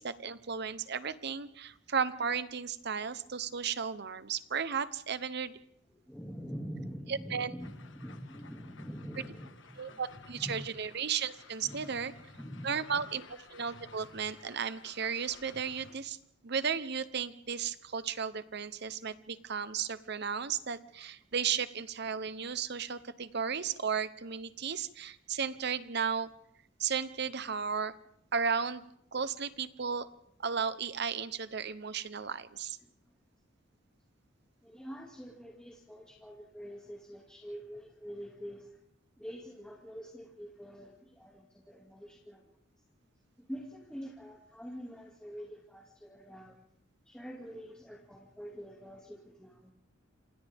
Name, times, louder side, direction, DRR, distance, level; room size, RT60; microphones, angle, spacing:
voice 1, 0.0-5.5 7.1-7.5 9.8-12.1 12.6-13.2 13.5-16.2 16.4-26.3 26.8-27.9 28.3-28.9 29.1-30.1 30.4-32.8, right 6 dB, 55° right, 14 dB, 0.9 m, -34 dB
voice 2, 5.9-10.0 10.4-10.6 11.6-13.1 32.8-32.9 34.6-38.8 39.2-42.4 43.4-46.6 47.1-49.7, equal, 5° left, -2 dB, 2.4 m, -45 dB
sound 1, 7.6-16.0, left 4 dB, 70° left, 1.5 m, -55 dB
27.5 x 26.5 x 3.6 m, 0.71 s
head